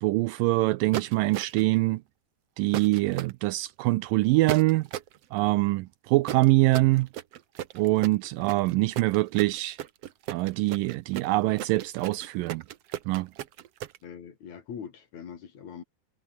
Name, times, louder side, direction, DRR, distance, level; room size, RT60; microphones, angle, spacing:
voice 1, 0.0-2.0 2.6-4.9 5.3-7.1 7.8-9.8 10.3-12.6 13.1-13.3, right 20 dB, 80° right, 2.1 m, -24 dB
sound 1, 0.9-1.7 2.7-3.3 4.5-5.2 6.3-14.0, right 11 dB, 65° right, 1.6 m, -35 dB
voice 2, 14.0-15.8, left 7 dB, 55° left, 3.5 m, -42 dB
omnidirectional pair, 4.2 m